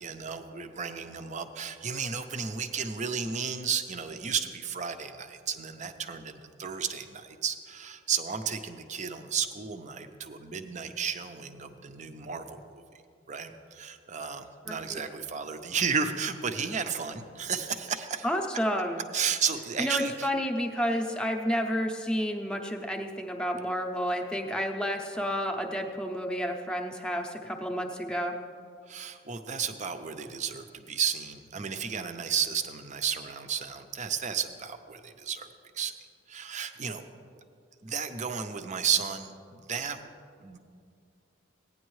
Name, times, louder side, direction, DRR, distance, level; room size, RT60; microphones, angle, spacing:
voice 1, 0.0-12.8 13.3-18.3 19.1-20.3 28.8-35.5 35.7-35.9 36.3-37.1 37.8-40.0 40.4-40.6, right 7 dB, 40° right, 7 dB, 0.6 m, -33 dB
voice 2, 14.7-15.0 18.2-19.0 19.8-28.3, equal, 5° left, 2 dB, 0.7 m, -30 dB
16.0 x 9.5 x 3.2 m, 2.3 s
head